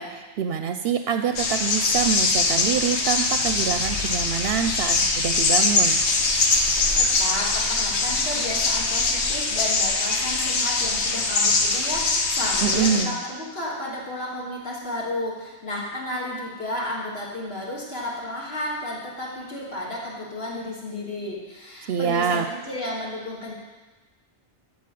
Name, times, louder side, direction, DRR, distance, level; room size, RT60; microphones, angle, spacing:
voice 1, 0.0-6.0 12.6-13.2 21.9-22.5, right 7 dB, 65° right, 8 dB, 0.7 m, -25 dB
sound 1, 1.3-13.0, left 3 dB, 80° left, 1.3 m, -22 dB
voice 2, 6.9-23.5, left 1 dB, 65° left, -5 dB, 2.7 m, -32 dB
13.0 x 4.4 x 7.6 m, 1.2 s
omnidirectional pair, 1.1 m